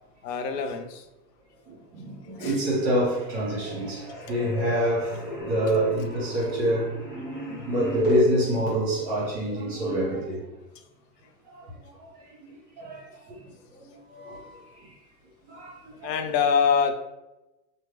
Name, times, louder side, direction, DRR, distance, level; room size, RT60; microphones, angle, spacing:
voice 1, 0.2-1.0 2.4-2.6 4.1-4.3 7.4-7.5 16.0-16.9, left 6 dB, 75° left, 0.6 m, -25 dB
voice 2, 1.7-7.0 7.3-10.4 11.5-11.7 12.0-13.4 13.8-14.9 15.5-16.1, right 1 dB, 15° right, 0.6 m, -28 dB
sound 1, 2.3-2.8 3.1-8.3, equal, 20° left, 1.0 m, -33 dB
3.0 x 2.1 x 3.3 m
supercardioid pair, 170°, 50 cm